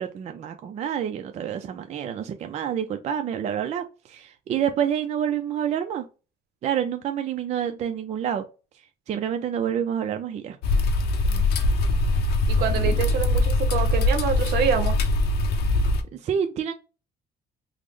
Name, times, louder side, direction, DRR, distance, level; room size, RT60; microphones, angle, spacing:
voice 1, 0.0-6.0 6.6-8.4 9.1-10.6 16.2-16.7, right 9 dB, 40° right, 0.4 m, -28 dB
sound 1, 10.6-16.0, left 2 dB, 75° left, 0.6 m, -22 dB
voice 2, 11.2-11.6 12.5-15.0, right 7 dB, 70° right, 0.8 m, -26 dB
3.5 x 2.0 x 3.2 m
cardioid pair, 110°, 17 cm